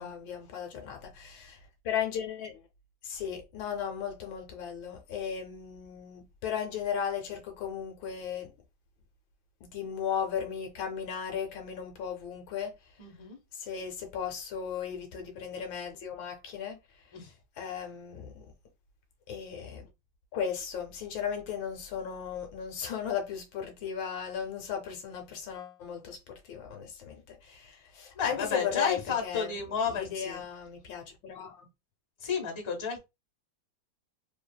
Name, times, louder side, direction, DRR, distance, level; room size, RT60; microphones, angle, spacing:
voice 1, 0.0-1.6 1.8-2.6 3.0-8.5 9.6-12.7 13.6-16.8 17.6-18.5 19.3-19.9 20.3-29.6 29.9-31.7, left 7 dB, 75° left, 1.3 m, -36 dB
voice 2, 13.0-13.4 17.1-17.3 28.1-30.5 32.2-33.0, left 6 dB, 25° left, 0.6 m, -32 dB
3.2 x 2.4 x 2.2 m
omnidirectional pair, 2.2 m